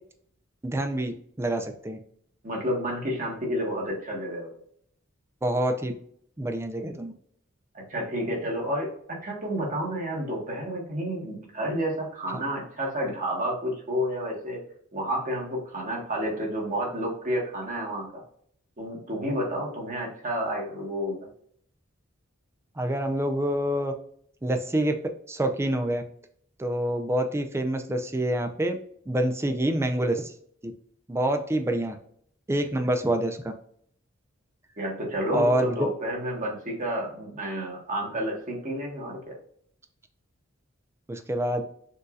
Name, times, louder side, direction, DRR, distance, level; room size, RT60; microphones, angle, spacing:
voice 1, 0.6-1.1 1.4-2.0 5.4-5.9 6.4-7.1 22.8-23.9 24.4-24.9 25.3-26.0 26.6-28.8 29.1-30.3 30.6-30.7 31.1-32.0 32.5-33.5 35.3-35.9 41.1-41.6, right 1 dB, 15° right, 5 dB, 0.5 m, -26 dB
voice 2, 2.4-4.5 7.7-14.6 14.9-18.2 18.8-21.3 34.8-39.4, equal, 40° right, -2 dB, 1.5 m, -30 dB
6.3 x 2.7 x 2.4 m, 0.64 s
head